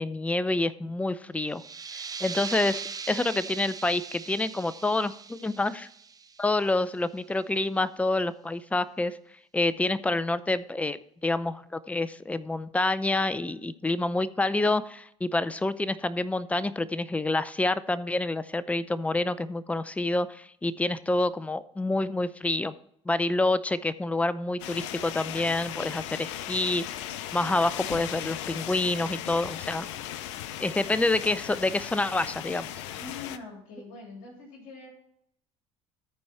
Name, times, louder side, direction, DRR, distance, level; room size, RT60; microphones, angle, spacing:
voice 1, 0.0-1.6 1.9-5.9 6.4-9.2 9.5-22.7 23.1-27.1 27.3-29.9 30.6-32.7, left 2 dB, 10° left, 16 dB, 0.5 m, -28 dB
sound 1, 1.5-6.9, right 5 dB, 25° right, 0.8 m, -40 dB
sound 2, 24.6-33.4, left 12 dB, 80° left, 0.6 m, -37 dB
voice 2, 33.0-34.9, left 3 dB, 65° left, 0 dB, 3.1 m, -43 dB
13.5 x 4.6 x 4.4 m, 0.71 s
hypercardioid pair, 75°, 15 cm